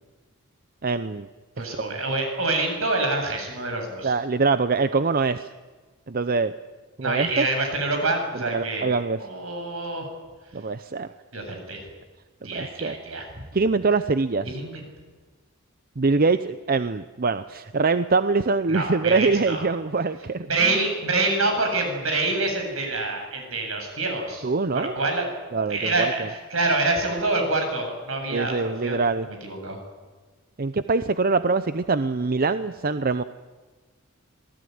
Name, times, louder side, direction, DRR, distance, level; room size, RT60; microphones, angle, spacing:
voice 1, 0.8-1.3 1.6-2.0 4.0-5.5 6.1-6.5 7.0-7.5 8.4-9.2 10.5-11.1 12.4-12.9 13.5-14.6 16.0-20.8 24.4-24.9 25.5-26.3 28.3-29.3 30.6-33.2, right 4 dB, 45° right, 11 dB, 0.7 m, -24 dB
voice 2, 1.6-4.1 7.0-8.9 9.2-10.1 11.3-11.8 12.4-13.3 14.5-14.9 18.7-19.6 20.5-24.4 24.7-25.3 25.7-29.8, right 2 dB, 75° right, 4 dB, 8.0 m, -26 dB
26.5 x 18.5 x 9.5 m, 1.4 s
head